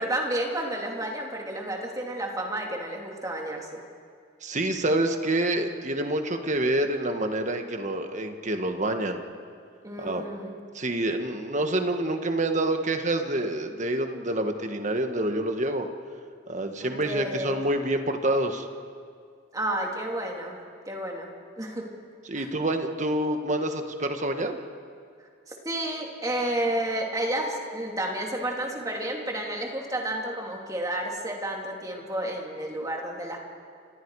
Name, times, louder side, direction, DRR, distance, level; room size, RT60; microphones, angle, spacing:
voice 1, 0.0-3.8 9.8-10.6 16.8-17.6 19.5-20.6 20.8-21.3 21.6-21.9 22.3-22.5 25.5-33.4, right 1 dB, 20° right, 0 dB, 2.9 m, -31 dB
voice 2, 4.4-9.2 10.0-10.2 10.7-15.9 16.5-18.7 22.3-24.6, right 1 dB, 40° right, 6 dB, 1.6 m, -27 dB
30.0 x 25.5 x 4.9 m, 2.2 s
head